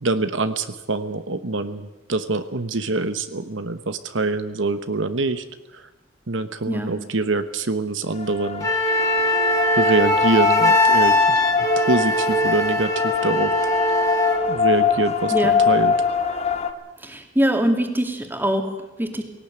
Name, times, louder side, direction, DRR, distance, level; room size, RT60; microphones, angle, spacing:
voice 1, 0.0-5.4 6.3-8.7 9.8-11.4 11.8-13.5 14.5-15.9, right 3 dB, 75° right, 10 dB, 1.1 m, -24 dB
voice 2, 6.7-7.0 15.3-15.6 17.0-19.2, equal, 10° right, 4 dB, 2.4 m, -23 dB
sound 1, 8.1-16.7, left 6 dB, 35° left, 1.4 m, -23 dB
Wind instrument woodwind instrument, 8.6-14.4, left 1 dB, 20° left, 2.4 m, -20 dB
19.0 x 18.0 x 8.9 m, 1.0 s
head